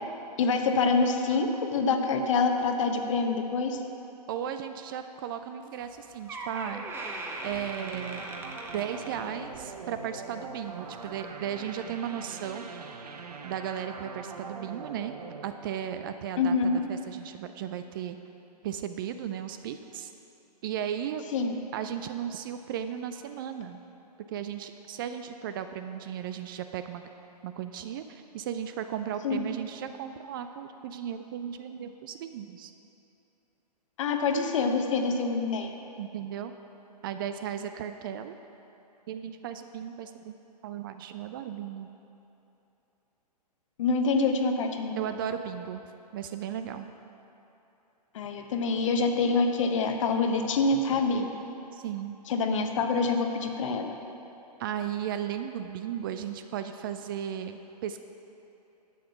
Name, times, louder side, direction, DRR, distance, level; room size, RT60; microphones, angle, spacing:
voice 1, 0.4-3.8 16.4-16.8 21.3-21.5 29.2-29.5 34.0-35.7 43.8-45.0 48.1-51.3 52.3-53.9, left 4 dB, 50° left, 5 dB, 1.0 m, -26 dB
voice 2, 4.3-6.8 7.4-8.3 8.7-12.7 13.4-15.2 15.4-18.2 18.6-20.1 20.6-21.2 21.7-23.8 24.3-27.1 27.4-32.7 36.0-36.5 37.0-38.4 39.1-40.4 40.6-41.9 45.0-45.8 46.1-46.9 51.7-52.1 54.6-58.0, right 9 dB, 35° right, 9 dB, 0.4 m, -35 dB
Door, 5.8-5.9 6.3-9.8 10.1-10.4 11.1-11.2, right 2 dB, 10° right, 1.0 m, -40 dB
sound 1, 7.4-16.8, right 4 dB, 65° right, 0.9 m, -43 dB
11.0 x 7.7 x 5.8 m, 2.9 s
figure-of-eight pair, 120°, 21 cm